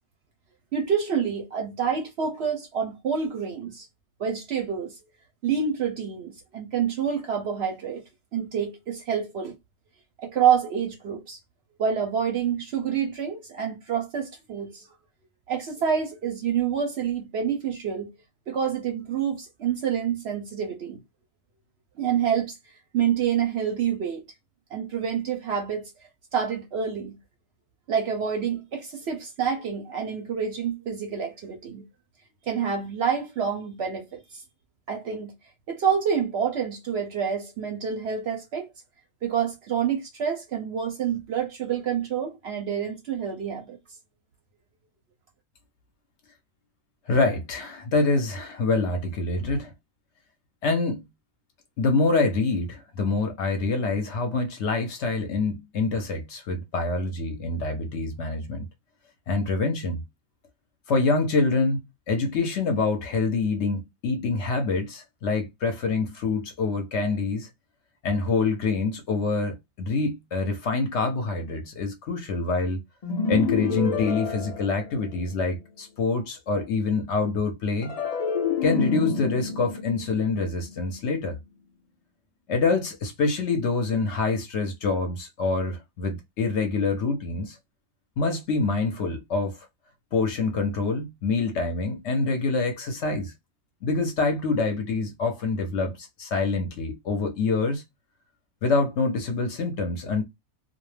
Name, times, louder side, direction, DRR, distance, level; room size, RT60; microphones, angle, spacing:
voice 1, 0.7-3.9 4.2-5.0 5.4-8.0 8.3-9.6 10.2-11.4 11.8-14.9 15.5-18.1 18.5-21.0 22.0-22.6 22.9-24.2 24.7-25.9 26.3-27.2 27.9-31.9 32.5-34.4 34.9-35.3 35.7-38.7 39.2-43.8, right 7 dB, 65° right, 0.7 m, -27 dB
voice 2, 47.1-49.7 50.6-51.1 51.8-58.7 59.3-60.0 60.9-67.5 68.0-72.8 73.3-77.9 78.6-81.4 82.5-87.6 88.2-89.7 90.1-93.3 93.8-97.8 98.6-100.2, left 3 dB, 65° left, 0.8 m, -26 dB
sound 1, 73.0-75.4 77.8-81.1, left 5 dB, 90° left, 0.3 m, -29 dB
2.3 x 2.1 x 3.1 m
omnidirectional pair, 1.5 m